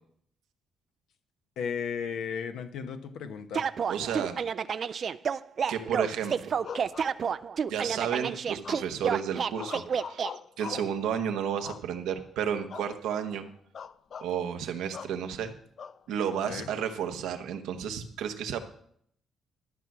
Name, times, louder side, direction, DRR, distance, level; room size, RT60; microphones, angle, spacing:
voice 1, 1.6-3.7 16.5-16.7, left 6 dB, 80° left, 7 dB, 0.9 m, -35 dB
sound 1, 3.5-10.3, right 7 dB, 50° right, 0.4 m, -30 dB
voice 2, 3.9-4.4 5.7-6.5 7.7-13.4 14.2-15.5 16.1-18.6, right 8 dB, 90° right, 6 dB, 1.0 m, -32 dB
sound 2, 6.6-7.7 8.6-9.1 9.5-11.0 11.6-12.2 12.7-12.9 13.2-13.4 13.7-14.3 14.9-15.2 15.8-16.5, left 7 dB, 50° left, 0.4 m, -42 dB
13.0 x 6.1 x 6.0 m, 0.66 s
cardioid pair, 90°, 0 cm